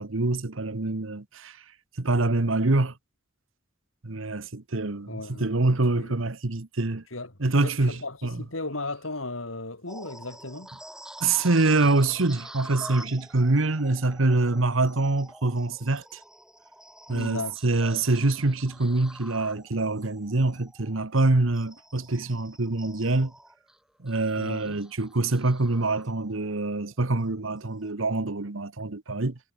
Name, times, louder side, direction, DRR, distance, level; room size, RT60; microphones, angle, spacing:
voice 1, 0.0-1.6 2.0-2.9 4.0-7.0 7.4-8.4 11.2-16.2 17.1-23.3 24.0-29.4, right 2 dB, 80° right, 1.3 m, -25 dB
voice 2, 5.1-5.5 6.0-6.1 7.1-7.3 7.6-10.7 17.1-17.6 24.4-24.8, left 2 dB, 85° left, 4.7 m, -35 dB
sound 1, 9.9-26.5 27.0-27.2 27.7-27.9, right 1 dB, 5° right, 2.7 m, -47 dB
head